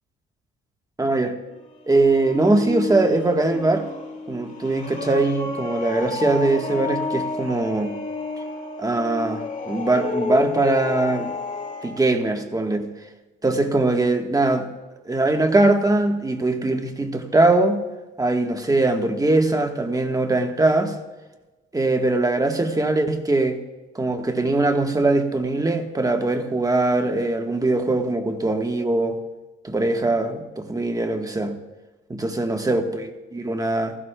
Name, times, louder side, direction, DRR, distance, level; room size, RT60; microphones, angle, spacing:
voice 1, 1.0-1.4 1.9-3.9 4.3-7.9 8.8-11.3 11.8-12.9 13.4-14.7 15.0-17.8 18.2-20.9 21.7-23.6 23.9-29.2 29.6-31.5 32.1-34.0, right 2 dB, 20° right, 5 dB, 1.3 m, -21 dB
sound 1, 1.5-12.0, left 3 dB, 40° left, 2.0 m, -31 dB
16.0 x 14.5 x 2.2 m, 1.1 s
cardioid pair, 90°, 20 cm